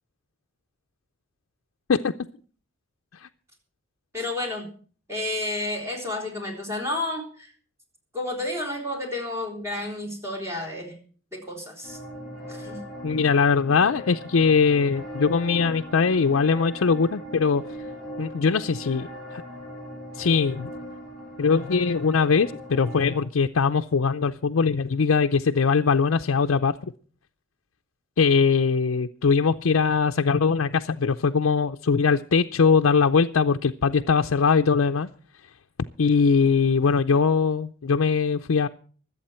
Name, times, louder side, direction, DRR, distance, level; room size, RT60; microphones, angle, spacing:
voice 1, 4.1-4.7 5.1-7.5 8.1-11.0 11.3-12.0 12.5-12.8, left 2 dB, 15° right, 1 dB, 4.0 m, -31 dB
sound 1, 11.8-23.2, left 1 dB, ahead, 7.8 m, -39 dB
voice 2, 13.0-17.6 18.2-19.1 20.1-20.7 21.4-26.7 28.2-35.1 36.0-38.7, left 5 dB, 80° left, 6 dB, 0.5 m, -21 dB
24.5 x 8.4 x 4.3 m, 0.42 s
head